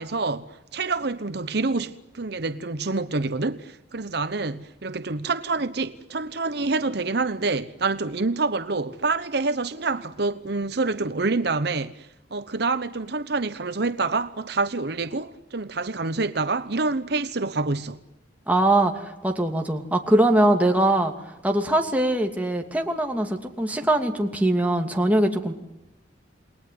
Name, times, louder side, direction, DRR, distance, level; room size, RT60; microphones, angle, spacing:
voice 1, 0.0-18.0, right 3 dB, 55° right, 1.0 m, -27 dB
voice 2, 18.5-21.1 21.4-25.5, right 1 dB, 10° right, 2.6 m, -22 dB
29.0 x 21.0 x 9.5 m
head